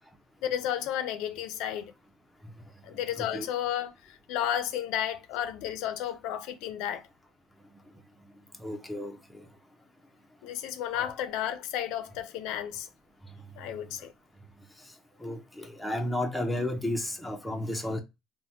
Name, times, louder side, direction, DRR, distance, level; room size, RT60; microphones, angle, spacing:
voice 1, 0.4-1.9 2.8-7.1 10.4-12.9 13.6-14.1, left 10 dB, 80° left, 0.5 m, -32 dB
voice 2, 3.2-3.5 8.6-9.4 10.9-11.1 15.2-18.0, left 1 dB, 5° left, 0.7 m, -33 dB
3.3 x 2.1 x 2.7 m
supercardioid pair, 85°, 0 cm